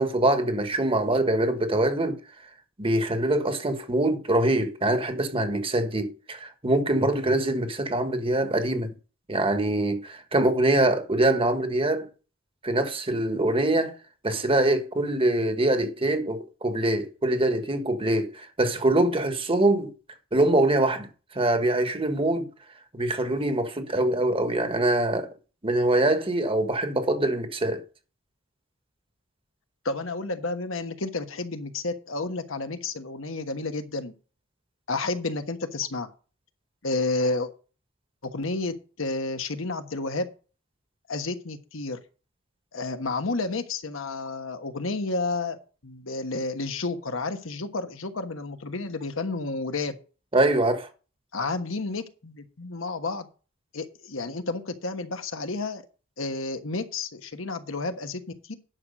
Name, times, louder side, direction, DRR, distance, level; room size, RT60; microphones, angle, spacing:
voice 1, 0.0-2.2 2.8-8.9 9.3-12.1 12.6-13.9 14.2-19.9 20.3-21.1 21.3-22.5 22.9-25.3 25.6-27.8 50.3-50.9, right 1 dB, 30° right, 1.4 m, -24 dB
voice 2, 29.8-34.1 34.9-36.1 36.8-37.5 38.2-40.3 41.1-42.0 42.7-45.6 45.8-49.9 51.3-53.3 53.7-55.8 56.2-58.5, left 3 dB, 75° left, 1.3 m, -31 dB
10.5 x 6.4 x 5.2 m
head